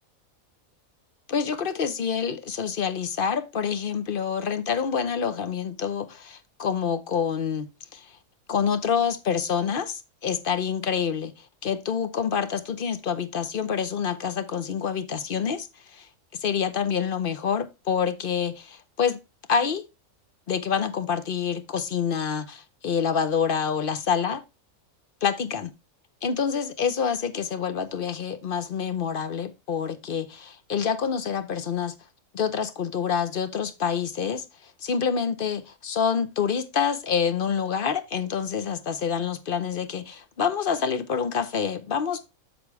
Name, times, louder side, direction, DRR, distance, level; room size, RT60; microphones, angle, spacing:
voice 1, 1.3-8.1 8.5-11.3 11.6-16.1 16.4-19.2 19.5-19.8 20.5-24.4 25.2-25.7 26.2-31.9 32.3-42.3, left 7 dB, 45° left, 0.8 m, -27 dB
8.2 x 6.1 x 3.1 m
omnidirectional pair, 1.5 m